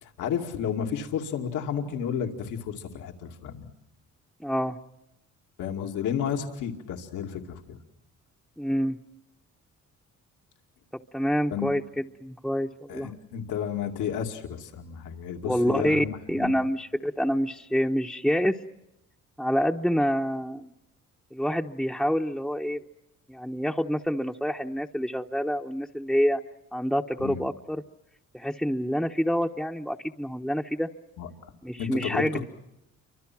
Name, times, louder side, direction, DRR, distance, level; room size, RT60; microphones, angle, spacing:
voice 1, 0.0-3.7 5.6-7.8 11.5-11.7 12.9-16.5 27.2-27.4 31.2-31.3 31.8-32.5, left 8 dB, 90° left, 3 dB, 2.4 m, -32 dB
voice 2, 4.4-4.8 8.6-9.0 11.1-13.1 15.4-18.6 19.4-20.7 21.3-22.8 23.3-26.4 26.7-27.8 28.3-30.9 31.6-32.4, equal, ahead, 1 dB, 0.9 m, -27 dB
29.5 x 25.0 x 6.1 m, 0.88 s
cardioid pair, 90°, 30 cm